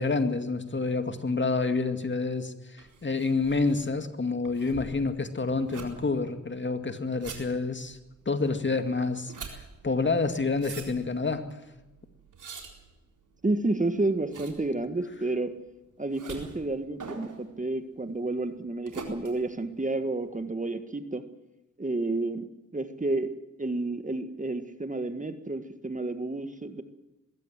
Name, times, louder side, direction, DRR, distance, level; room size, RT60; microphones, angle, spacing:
voice 1, 0.0-8.0 8.3-11.6, left 3 dB, 35° left, 8 dB, 2.1 m, -28 dB
sound 1, 2.8-20.4, right 4 dB, 75° right, 4.2 m, -46 dB
voice 2, 13.4-15.5 16.0-21.2 21.8-22.5 22.7-23.3 23.6-26.8, right 2 dB, 25° right, 9 dB, 1.8 m, -30 dB
21.5 x 16.5 x 7.5 m, 1.0 s
cardioid pair, 65°, 31 cm